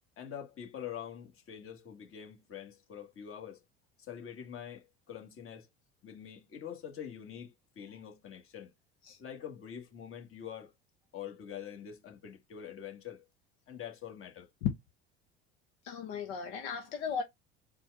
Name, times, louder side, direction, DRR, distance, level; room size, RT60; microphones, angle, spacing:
voice 1, 0.2-3.6 4.0-5.7 6.0-8.7 9.2-10.7 11.1-13.2 13.7-14.5, left 9 dB, 45° left, 1.7 m, -45 dB
voice 2, 15.8-17.2, left 7 dB, 75° left, 1.1 m, -35 dB
4.4 x 2.4 x 4.6 m
hypercardioid pair, 75°, 31 cm